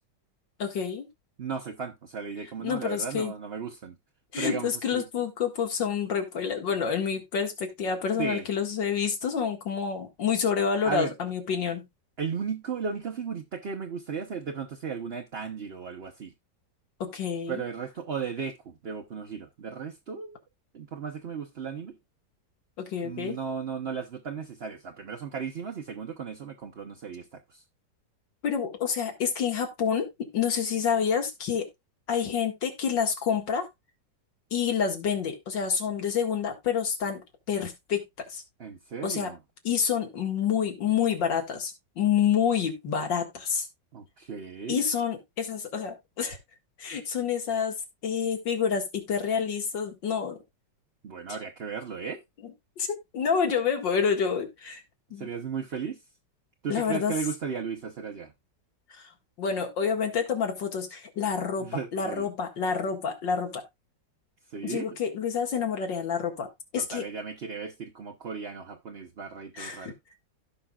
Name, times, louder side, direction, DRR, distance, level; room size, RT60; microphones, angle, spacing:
voice 1, 0.6-1.1 2.6-3.3 4.3-11.9 17.0-17.6 22.8-23.4 28.4-31.7 32.1-33.7 34.5-38.0 38.3-38.4 39.0-39.3 39.6-43.7 44.7-46.4 46.8-47.7 48.0-50.4 51.3-51.4 52.4-54.8 55.1-55.3 56.7-57.1 58.9-59.1 59.4-63.6 64.6-66.5 66.7-67.1 69.5-69.9, left 7 dB, 80° left, 2.5 m, -28 dB
voice 2, 1.4-4.0 4.4-5.0 8.2-8.5 10.8-11.1 12.2-16.3 17.5-20.4 20.7-21.9 23.0-27.6 38.6-39.4 43.9-44.8 51.0-52.2 55.2-56.0 56.6-58.3 61.6-62.3 64.5-64.9 66.8-69.9, right 6 dB, 45° right, 0.9 m, -35 dB
16.0 x 5.5 x 2.3 m
omnidirectional pair, 2.0 m